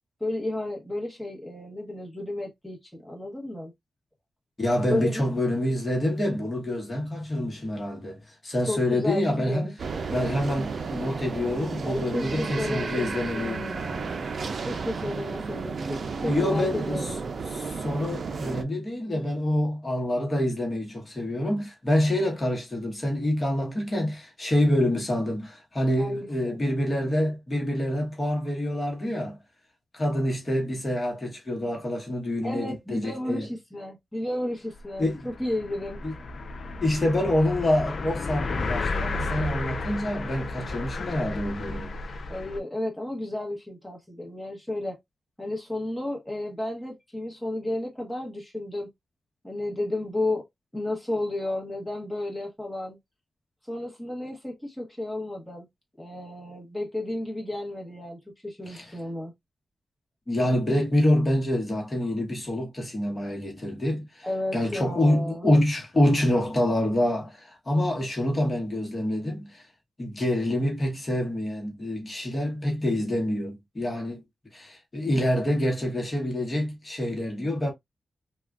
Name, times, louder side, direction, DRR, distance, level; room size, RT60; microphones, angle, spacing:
voice 1, 0.2-3.7 4.9-5.3 8.7-9.7 11.8-14.2 14.7-17.2 26.0-26.6 32.4-36.0 42.3-45.0 45.4-48.9 49.4-50.4 50.7-53.0 53.7-55.7 56.0-59.3 64.2-65.5, left 1 dB, 5° left, 1.1 m, -32 dB
voice 2, 4.6-9.7 10.1-13.7 16.2-17.1 17.5-29.4 29.9-33.5 35.0-35.3 36.0-36.1 36.8-41.9 58.6-58.9 60.3-64.3 64.5-69.6 70.0-74.2 74.5-77.7, left 1 dB, 30° left, 1.1 m, -26 dB
sound 1, 9.8-18.6, right 4 dB, 60° right, 0.5 m, -32 dB
sound 2, 34.8-34.9 35.1-42.6, left 3 dB, 60° left, 0.5 m, -33 dB
3.5 x 2.3 x 2.3 m
wide cardioid pair, 95°, 0 cm